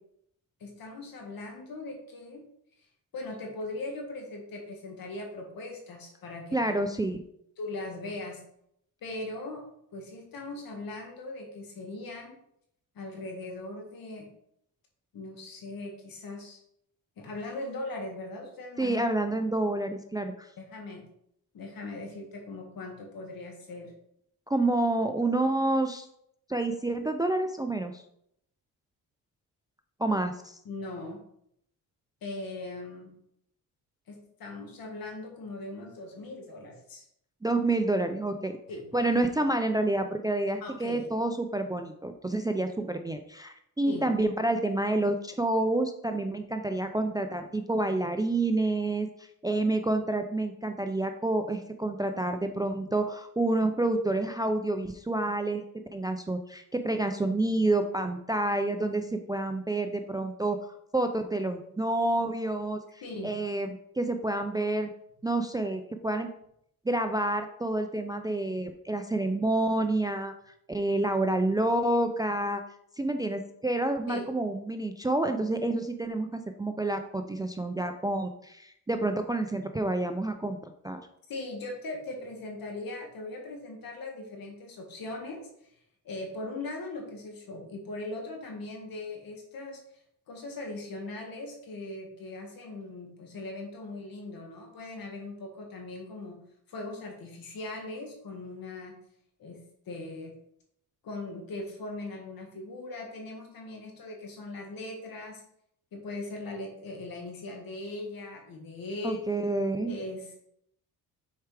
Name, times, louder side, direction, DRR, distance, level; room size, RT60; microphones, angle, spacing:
voice 1, 0.6-2.4 3.1-6.8 7.6-8.4 9.0-9.6 9.9-12.4 13.0-14.3 15.1-16.6 17.2-19.0 20.6-21.0 21.5-23.9 30.6-31.2 32.2-33.1 34.1-37.1 38.7-38.9 40.6-41.0 43.8-44.0 63.0-63.3 74.1-74.3 81.3-85.4 86.0-89.8 90.3-96.4 96.7-99.0 99.4-99.6 99.9-100.3 101.0-105.4 105.9-109.3 109.9-110.4, left 2 dB, 65° left, 1 dB, 1.9 m, -39 dB
voice 2, 6.5-7.2 18.8-20.5 24.5-26.1 26.5-28.0 30.0-30.6 37.4-38.6 38.9-55.6 55.9-64.9 65.2-66.3 66.9-70.3 70.7-72.6 73.0-80.6 80.8-81.0 109.0-109.9, right 2 dB, 10° right, 6 dB, 0.4 m, -28 dB
6.5 x 4.6 x 3.4 m, 0.72 s
cardioid pair, 90°, 38 cm